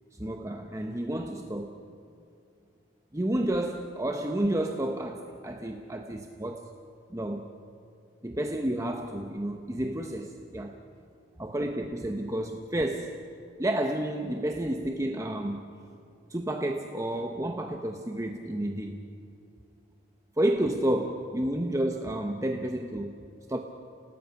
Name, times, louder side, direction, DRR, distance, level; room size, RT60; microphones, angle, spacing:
voice 1, 0.2-1.8 3.1-6.7 7.1-7.5 8.2-10.8 11.4-13.2 13.6-15.6 16.3-19.0 20.4-23.2 23.5-23.6, right 1 dB, 15° right, 4 dB, 0.9 m, -30 dB
29.5 x 19.0 x 5.9 m, 2.6 s
head